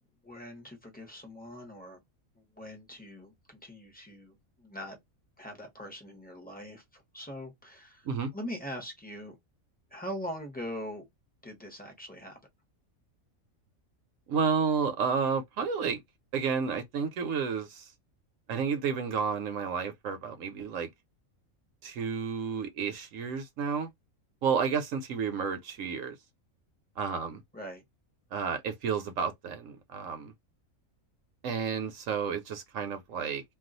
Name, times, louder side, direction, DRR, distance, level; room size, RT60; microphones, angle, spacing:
voice 1, 0.2-2.0 2.4-5.0 5.4-8.1 8.3-9.4 9.9-11.0 11.4-12.4 27.5-27.8, equal, 10° left, 0.6 m, -42 dB
voice 2, 14.3-16.0 16.3-17.9 18.5-20.9 21.8-23.9 24.4-26.2 27.0-27.4 28.3-30.3 31.4-33.4, right 6 dB, 70° right, 0.9 m, -31 dB
2.4 x 2.3 x 3.8 m
omnidirectional pair, 1.5 m